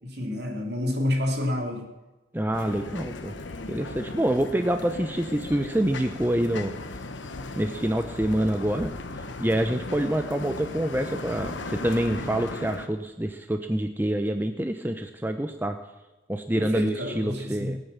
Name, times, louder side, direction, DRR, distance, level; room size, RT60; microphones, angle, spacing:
voice 1, 0.0-1.9 16.5-17.8, left 1 dB, 60° right, 1 dB, 3.2 m, -29 dB
voice 2, 2.3-3.3 3.7-6.7 7.6-8.9 9.4-15.8 16.3-17.8, right 1 dB, 10° right, 7 dB, 0.6 m, -26 dB
sound 1, 2.5-12.9, left 2 dB, 85° left, 1.2 m, -37 dB
18.0 x 8.9 x 7.2 m, 1.1 s
head